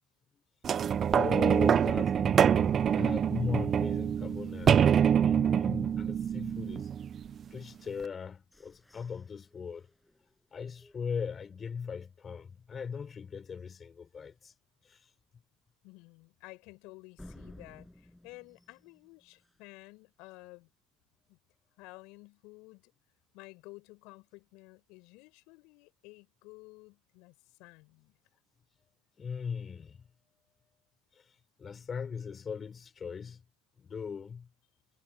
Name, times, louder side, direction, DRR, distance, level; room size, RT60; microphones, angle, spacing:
sound 1, 0.6-7.4 8.0-8.1, right 8 dB, 35° right, 0.6 m, -26 dB
voice 1, 1.1-4.8 5.2-6.9 7.5-9.9 10.5-14.5 14.8-15.1 29.2-30.0 31.1-31.2 31.6-33.4 33.8-34.5, left 6 dB, 25° left, 6.0 m, -39 dB
sound 2, 7.9-11.8 12.2-12.3 12.7-13.1 13.5-13.6 14.1-14.2 17.2-19.8, left 1 dB, 5° left, 7.1 m, -56 dB
voice 2, 15.8-20.7 21.3-21.4 21.8-22.9 23.3-28.2, left 25 dB, 65° left, 7.0 m, -53 dB
supercardioid pair, 100°, 0 cm